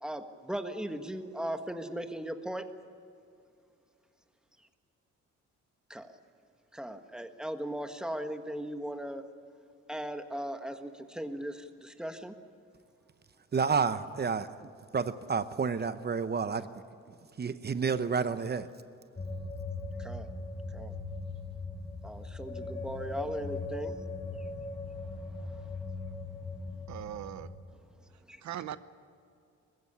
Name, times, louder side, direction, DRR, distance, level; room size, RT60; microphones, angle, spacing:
voice 1, 0.0-2.7 5.9-6.1 6.7-9.2 9.9-12.3 20.0-20.3 20.7-20.9 22.0-23.9 25.4-25.5 28.3-28.4, right 1 dB, ahead, 7 dB, 1.5 m, -38 dB
voice 2, 13.5-14.5 14.9-16.7 17.4-18.7, right 5 dB, 35° right, 12 dB, 0.9 m, -30 dB
sound 1, 19.2-27.6, left 3 dB, 25° left, 6.1 m, -39 dB
voice 3, 26.9-27.5 28.4-28.8, right 11 dB, 70° right, 14 dB, 0.9 m, -39 dB
21.0 x 15.5 x 9.9 m, 2.4 s
cardioid pair, 90°, 30 cm